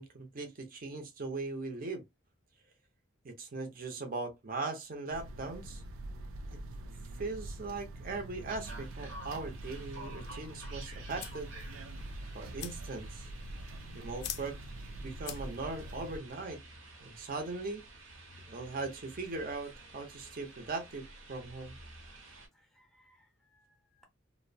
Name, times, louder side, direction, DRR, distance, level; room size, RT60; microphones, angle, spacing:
voice 1, 0.0-2.0 3.2-5.8 6.5-6.6 7.1-11.5 12.3-13.3 13.9-14.6 15.0-16.6 17.0-17.8 18.5-21.7, right 3 dB, 45° right, 0.6 m, -39 dB
sound 1, 5.1-16.2, right 2 dB, 90° right, 0.4 m, -45 dB
sound 2, 8.5-22.5, right 2 dB, 70° right, 0.8 m, -51 dB
sound 3, 10.1-15.9, left 10 dB, 55° left, 0.3 m, -48 dB
voice 2, 22.5-24.0, equal, ahead, 0.6 m, -68 dB
2.6 x 2.0 x 2.5 m
head